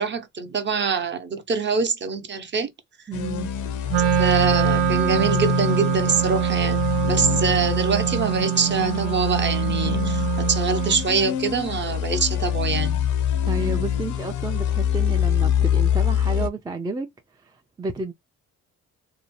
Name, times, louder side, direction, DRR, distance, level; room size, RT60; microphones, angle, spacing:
voice 1, 0.0-2.7 4.2-13.0, right 5 dB, 35° right, 0.7 m, -24 dB
sound 1, 3.1-16.5, left 9 dB, 75° left, 0.6 m, -25 dB
voice 2, 3.1-3.5 13.5-17.1 17.4-18.1, right 3 dB, 15° right, 0.4 m, -31 dB
Wind instrument woodwind instrument, 3.9-11.1, right 15 dB, 90° right, 0.5 m, -24 dB
2.7 x 2.0 x 3.0 m
cardioid pair, 90°, 30 cm